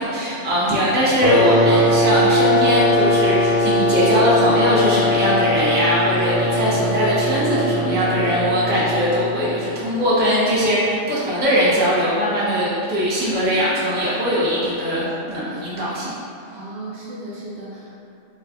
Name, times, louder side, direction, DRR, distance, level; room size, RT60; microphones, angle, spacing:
voice 1, 0.0-16.2, equal, 15° right, -9 dB, 0.4 m, -20 dB
sound 1, 1.2-9.6, left 1 dB, 45° left, 0.4 m, -20 dB
voice 2, 6.5-7.0 13.3-13.4 16.5-17.9, right 1 dB, 60° right, -6 dB, 0.7 m, -35 dB
3.2 x 2.3 x 3.5 m, 2.7 s
omnidirectional pair, 1.3 m